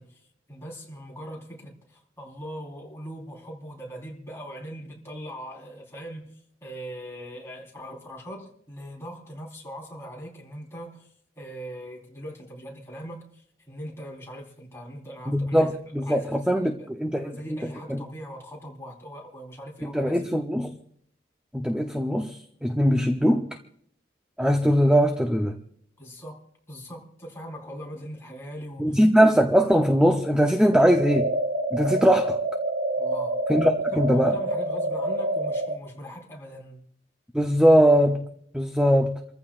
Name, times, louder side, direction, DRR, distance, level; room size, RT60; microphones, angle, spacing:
voice 1, 0.0-15.7 16.0-16.9 17.2-20.4 26.0-29.0 33.0-33.4 33.9-36.8, equal, 15° left, 3.9 m, -41 dB
voice 2, 15.3-17.6 17.9-18.0 19.8-20.7 21.5-23.5 24.4-25.5 28.8-31.3 31.7-32.4 33.5-34.3 37.3-38.3 38.5-39.2, equal, 5° right, 0.7 m, -21 dB
sound 1, 30.7-35.7, right 1 dB, 80° right, 1.9 m, -27 dB
28.5 x 14.5 x 2.5 m
head